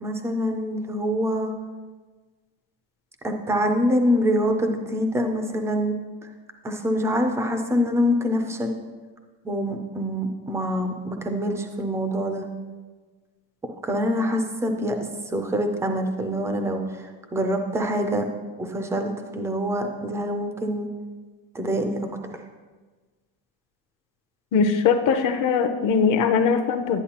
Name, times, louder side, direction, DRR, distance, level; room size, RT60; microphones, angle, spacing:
voice 1, 0.0-1.5 3.2-6.0 6.6-8.8 9.4-12.5 13.8-15.0 15.3-18.3 18.6-20.9 21.5-22.1, equal, 5° right, 5 dB, 0.3 m, -25 dB
voice 2, 24.5-27.0, left 6 dB, 45° left, 8 dB, 0.7 m, -21 dB
11.0 x 10.0 x 2.9 m, 1.4 s
cardioid pair, 165°, 46 cm